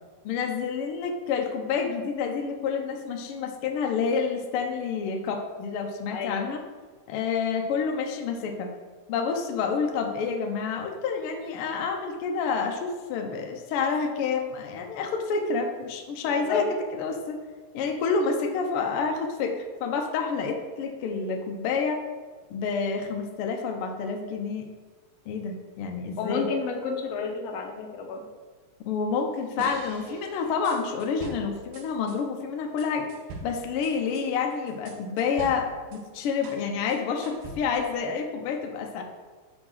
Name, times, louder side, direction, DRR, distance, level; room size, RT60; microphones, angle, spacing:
voice 1, 0.2-6.6 7.1-8.7 9.1-16.6 16.9-17.4 17.7-22.0 22.5-24.7 25.3-26.5 28.9-33.1 33.4-39.0, left 5 dB, 85° left, 4 dB, 1.2 m, -28 dB
voice 2, 6.1-6.5 16.2-16.7 26.2-28.2, left 6 dB, 65° left, 3 dB, 1.8 m, -31 dB
sound 1, 29.6-32.2 32.8-36.7 36.9-37.9, right 3 dB, 85° right, 2.3 m, -43 dB
6.1 x 5.2 x 6.4 m, 1.4 s
omnidirectional pair, 3.5 m